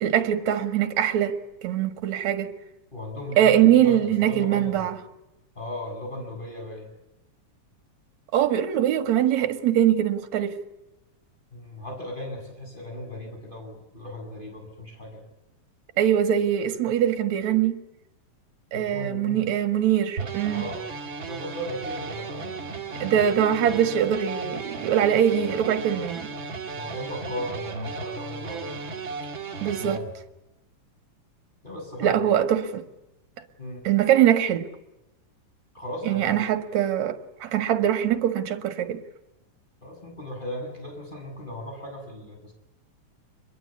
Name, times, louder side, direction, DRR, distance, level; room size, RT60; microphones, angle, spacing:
voice 1, 0.0-1.4 1.6-2.5 3.4-5.0 8.3-10.6 16.0-17.8 18.7-20.7 23.0-26.3 29.6-30.0 32.0-32.8 33.8-34.7 36.0-39.0, right 10 dB, 65° right, 2.8 m, -22 dB
voice 2, 2.9-4.9 5.5-6.9 11.5-15.3 18.7-19.5 20.5-20.9 21.2-23.3 26.7-28.8 29.2-29.3 29.8-30.1 31.6-32.2 33.6-33.9 35.7-36.5 39.8-42.5, left 1 dB, 15° left, 7.9 m, -37 dB
sound 1, 20.2-30.0, right 4 dB, 40° right, 2.7 m, -35 dB
25.5 x 22.0 x 8.6 m
omnidirectional pair, 3.7 m